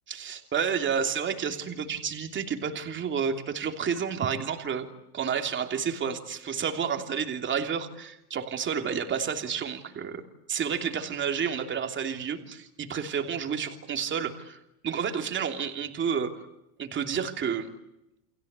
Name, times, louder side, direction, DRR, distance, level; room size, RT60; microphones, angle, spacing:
voice 1, 0.1-4.9 5.1-10.2 10.5-16.4 16.8-17.7, right 7 dB, 25° right, 5 dB, 3.1 m, -30 dB
29.5 x 24.0 x 8.3 m, 0.88 s
supercardioid pair, 145°, 48 cm